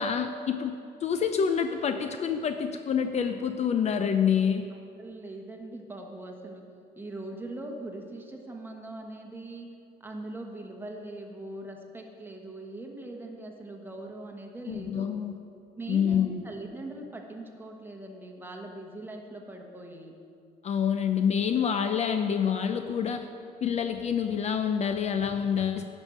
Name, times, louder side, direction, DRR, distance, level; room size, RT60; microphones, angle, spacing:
voice 1, 0.0-4.7 14.7-15.3 15.9-16.4 20.6-23.3 23.6-25.8, left 7 dB, 40° left, 8 dB, 0.5 m, -27 dB
voice 2, 5.0-6.6 7.0-9.7 10.0-15.1 15.8-20.2, right 2 dB, 10° right, 1 dB, 1.2 m, -41 dB
10.5 x 5.3 x 6.3 m, 2.5 s
cardioid pair, 110°, 17 cm